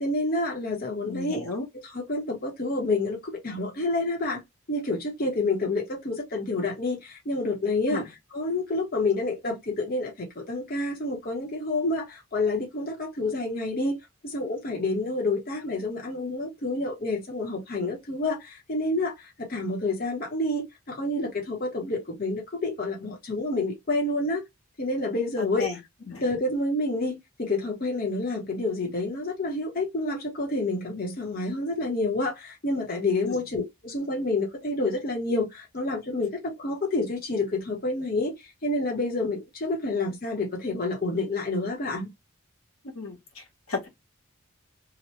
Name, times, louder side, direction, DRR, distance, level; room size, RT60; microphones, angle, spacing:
voice 1, 0.0-1.4 1.9-4.4 4.7-8.0 8.3-14.0 14.2-24.4 24.8-25.7 26.2-38.3 38.6-42.1, left 2 dB, 40° left, 0.8 m, -28 dB
voice 2, 1.0-1.7 7.9-8.1 25.4-25.8 26.1-26.2 33.2-33.4 42.9-43.9, left 3 dB, 80° left, 1.1 m, -34 dB
2.9 x 2.0 x 3.1 m
head